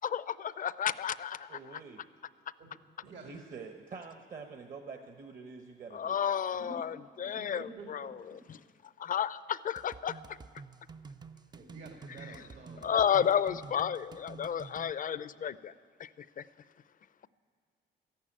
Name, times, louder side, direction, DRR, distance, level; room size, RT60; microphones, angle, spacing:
voice 1, 0.1-1.5 5.9-7.6 7.9-8.1 8.5-8.6 9.0-10.4 12.8-15.7 16.0-16.4, left 8 dB, 45° left, 17 dB, 0.5 m, -32 dB
voice 2, 1.5-2.0 3.0-6.2, right 5 dB, 45° right, 5 dB, 1.0 m, -46 dB
voice 3, 2.6-3.3 6.5-6.7 7.3-8.1 11.5-13.1, right 3 dB, 75° right, 0 dB, 2.3 m, -49 dB
sound 1, 9.8-14.9, right 5 dB, 20° right, 0.4 m, -49 dB
14.0 x 11.5 x 8.6 m, 2.1 s
cardioid pair, 90°, 20 cm